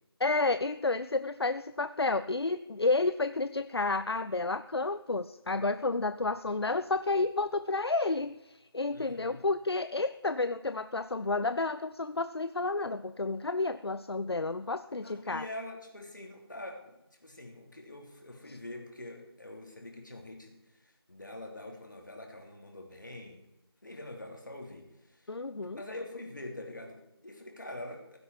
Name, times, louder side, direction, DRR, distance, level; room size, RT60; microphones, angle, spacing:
voice 1, 0.2-15.4 25.3-25.8, left 3 dB, 70° left, 12 dB, 0.6 m, -31 dB
voice 2, 8.9-9.4 15.0-23.4 23.8-25.3 25.8-28.2, left 1 dB, 50° left, 1 dB, 3.1 m, -45 dB
16.0 x 10.5 x 4.7 m, 0.92 s
figure-of-eight pair, 175°, 14 cm